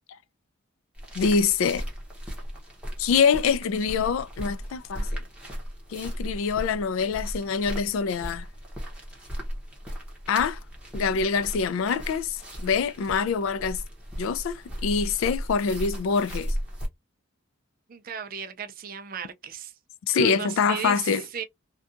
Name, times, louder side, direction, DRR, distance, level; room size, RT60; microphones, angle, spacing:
sound 1, 0.9-16.9, equal, 5° right, 0.8 m, -36 dB
voice 1, 1.1-1.9 3.0-5.2 5.9-8.5 10.3-10.6 10.9-13.8 14.2-16.6 20.1-21.2, left 6 dB, 70° left, 0.3 m, -25 dB
voice 2, 17.9-19.7 20.1-21.4, right 7 dB, 45° right, 0.4 m, -36 dB
2.7 x 2.2 x 2.4 m
head